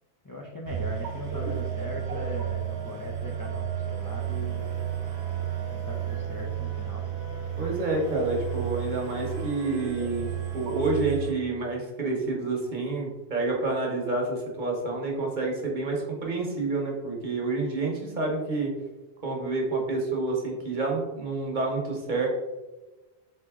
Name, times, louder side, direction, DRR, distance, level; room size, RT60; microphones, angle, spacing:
voice 1, 0.2-4.7 5.7-7.0, left 2 dB, 30° left, -2 dB, 0.4 m, -39 dB
sound 1, 0.7-11.3, right 9 dB, 80° right, 1.0 m, -32 dB
voice 2, 7.6-18.7 19.2-22.3, right 3 dB, 50° right, -1 dB, 1.1 m, -28 dB
3.8 x 3.5 x 3.5 m, 1.1 s
omnidirectional pair, 1.1 m